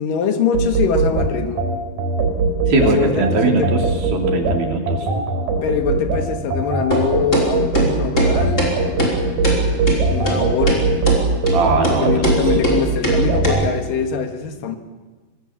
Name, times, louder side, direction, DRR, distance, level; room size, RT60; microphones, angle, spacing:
voice 1, 0.0-1.7 2.7-3.7 5.6-8.8 10.1-11.0 11.9-14.8, left 6 dB, 70° left, 7 dB, 3.0 m, -23 dB
sound 1, 0.5-13.7, right 3 dB, 55° right, 4.5 m, -20 dB
voice 2, 2.7-3.8 4.1-5.1 11.5-12.4, right 3 dB, 75° right, 3 dB, 4.7 m, -20 dB
sound 2, 6.9-7.0 7.3-7.5 7.8-7.9 8.2-8.3 8.6-8.7 9.0-9.1 9.4-9.6 9.9-10.0 10.3-10.4 10.7-10.8 11.1-11.2 11.5-11.6 11.8-12.0 12.2-12.4 12.6-12.8 13.0-13.2 13.4-13.5, equal, 20° left, 5.3 m, -20 dB
24.5 x 20.5 x 7.2 m, 1.3 s
omnidirectional pair, 4.3 m